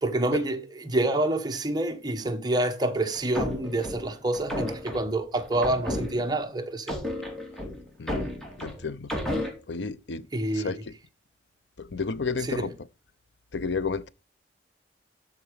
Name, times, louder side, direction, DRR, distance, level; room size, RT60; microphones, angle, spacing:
voice 1, 0.0-7.0 10.3-10.8 12.4-12.7, right 2 dB, 25° right, 1.3 m, -27 dB
sound 1, 3.1-6.5 6.9-9.5, left 1 dB, 5° left, 2.9 m, -33 dB
voice 2, 8.6-9.1 9.7-10.3 10.5-10.9 11.8-12.7 13.5-14.1, left 4 dB, 85° left, 0.7 m, -31 dB
13.0 x 4.9 x 5.0 m
head